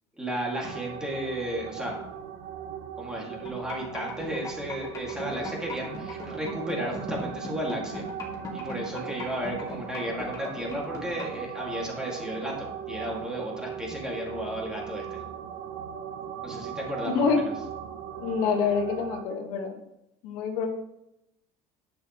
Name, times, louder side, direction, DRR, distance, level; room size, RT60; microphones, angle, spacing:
voice 1, 0.2-2.0 3.0-8.1 8.5-15.2 16.4-17.4, equal, 5° right, -3 dB, 2.2 m, -34 dB
sound 1, 0.6-19.2, right 9 dB, 85° right, 0.9 m, -39 dB
sound 2, 3.4-11.4, left 3 dB, 25° left, 2.0 m, -38 dB
voice 2, 17.0-17.4 18.2-19.7 20.2-20.8, left 5 dB, 75° left, 3 dB, 1.6 m, -26 dB
10.5 x 8.2 x 3.1 m, 0.84 s
cardioid pair, 170°, 13 cm